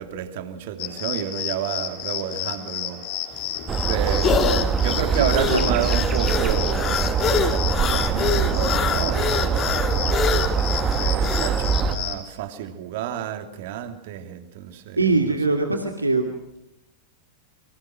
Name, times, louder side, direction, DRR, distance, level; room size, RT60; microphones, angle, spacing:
voice 1, 0.0-3.0 3.8-9.8 10.7-15.0 15.2-15.3, right 9 dB, 50° right, 2.9 m, -30 dB
sound 1, 0.8-12.2, left 12 dB, 50° left, 4.4 m, -31 dB
Fast Breathing, 3.3-11.6, left 6 dB, 25° left, 3.1 m, -26 dB
sound 2, 3.7-12.0, right 6 dB, 25° right, 1.7 m, -23 dB
voice 2, 5.2-5.7 15.0-16.3, right 3 dB, 80° right, 2.6 m, -22 dB
30.0 x 25.0 x 6.2 m
figure-of-eight pair, 90°, 0 cm